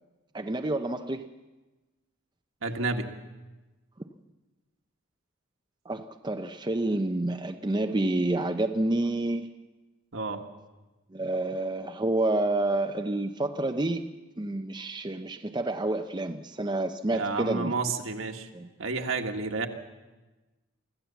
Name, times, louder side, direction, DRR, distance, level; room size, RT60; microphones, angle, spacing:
voice 1, 0.3-1.3 5.9-9.5 11.1-14.1 14.4-17.7 18.5-18.7, right 2 dB, 20° right, 5 dB, 0.6 m, -29 dB
voice 2, 2.6-3.1 10.1-10.4 17.1-18.5 18.8-19.7, right 3 dB, 70° right, 4 dB, 1.7 m, -30 dB
24.5 x 15.0 x 7.1 m, 1.2 s
head